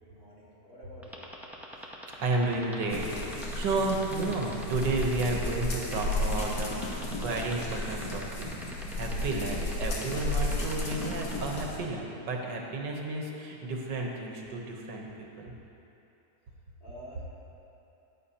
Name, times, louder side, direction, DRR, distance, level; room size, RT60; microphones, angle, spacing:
voice 1, 0.0-1.3 16.8-17.2, equal, 30° left, -9 dB, 2.4 m, -49 dB
sound 1, 1.0-11.3, equal, 5° right, 0.3 m, -42 dB
voice 2, 2.2-8.7 9.0-15.1 15.4-15.5, right 2 dB, 90° right, 0 dB, 1.8 m, -32 dB
sound 2, 2.9-11.8, left 1 dB, 70° left, 1.9 m, -33 dB
13.5 x 10.0 x 2.9 m, 3.0 s
omnidirectional pair, 1.9 m